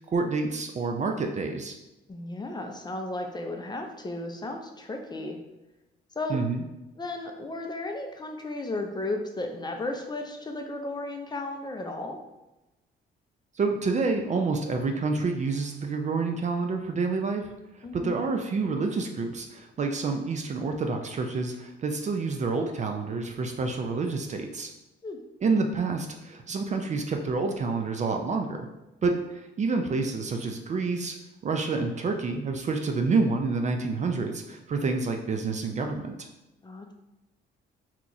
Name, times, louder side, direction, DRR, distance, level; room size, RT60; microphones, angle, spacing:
voice 1, 0.0-1.7 6.3-6.6 13.6-17.5 17.9-24.7 25.4-28.7 29.0-31.2 31.4-36.2, right 4 dB, 35° right, 4 dB, 0.4 m, -28 dB
voice 2, 2.1-5.4 6.2-6.4 7.0-12.2 17.8-18.2 25.0-25.2 36.6-36.9, left 2 dB, 20° left, 3 dB, 0.5 m, -34 dB
2.8 x 2.3 x 3.9 m, 0.97 s
cardioid pair, 90°, 20 cm